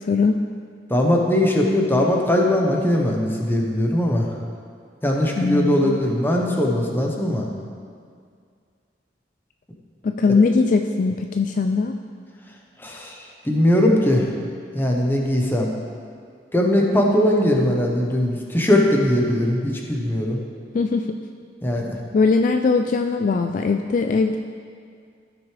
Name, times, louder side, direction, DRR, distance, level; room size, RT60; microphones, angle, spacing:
voice 1, 0.1-0.4 5.4-6.0 10.0-12.0 20.7-21.2 22.1-24.4, left 4 dB, 45° left, 6 dB, 0.3 m, -20 dB
voice 2, 0.9-4.3 5.0-7.5 12.8-13.1 13.4-14.3 14.7-15.7 16.5-20.4 21.6-22.0, left 1 dB, 10° left, 0 dB, 1.0 m, -20 dB
14.5 x 6.1 x 3.3 m, 2.2 s
head